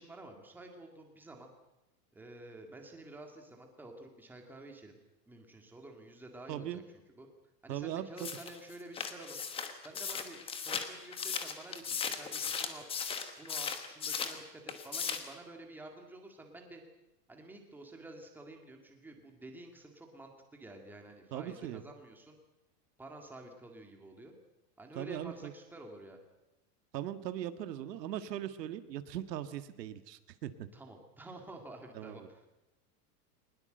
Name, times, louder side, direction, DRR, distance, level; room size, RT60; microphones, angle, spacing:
voice 1, 0.0-1.5 2.1-5.0 5.3-6.8 7.2-7.3 7.6-9.4 9.8-12.9 13.4-16.8 17.3-22.4 23.0-24.3 24.8-26.2 30.7-32.5, right 2 dB, 5° right, 3 dB, 2.1 m, -50 dB
voice 2, 6.5-6.8 7.7-8.3 21.3-21.8 24.9-25.5 26.9-30.5 31.9-32.3, right 11 dB, 85° right, 10 dB, 1.8 m, -39 dB
sound 1, 8.2-14.4 14.7-15.3, left 6 dB, 10° left, 1.1 m, -37 dB
21.0 x 20.5 x 7.8 m, 0.96 s
supercardioid pair, 175°, 48 cm